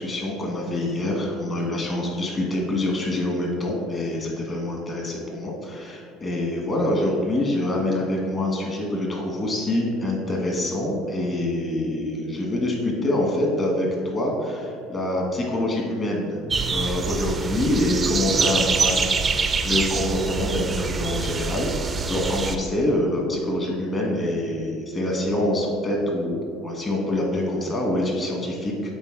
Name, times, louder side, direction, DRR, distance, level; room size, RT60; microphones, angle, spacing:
voice 1, 0.0-16.4 16.7-19.0 19.3-28.9, left 1 dB, 30° left, -1 dB, 1.5 m, -25 dB
sound 1, 16.5-22.6, right 4 dB, 25° right, 0.4 m, -25 dB
8.1 x 3.8 x 3.8 m, 2.3 s
supercardioid pair, 115°, 0 cm